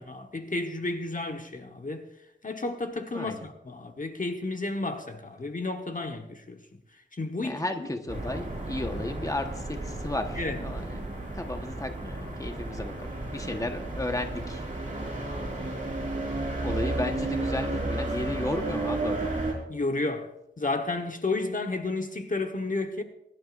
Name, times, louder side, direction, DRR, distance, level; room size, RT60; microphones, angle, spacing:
voice 1, 0.0-2.1 2.4-6.6 7.1-7.9 10.4-10.6 19.7-20.3 20.6-23.0, left 2 dB, 40° left, 1.2 m, -32 dB
voice 2, 3.1-3.5 7.4-11.1 11.3-14.7 16.6-19.4, left 1 dB, 15° left, 1.2 m, -34 dB
sound 1, 8.1-19.5, right 2 dB, 40° right, 4.8 m, -33 dB
23.5 x 11.5 x 2.6 m
wide cardioid pair, 75°, 20 cm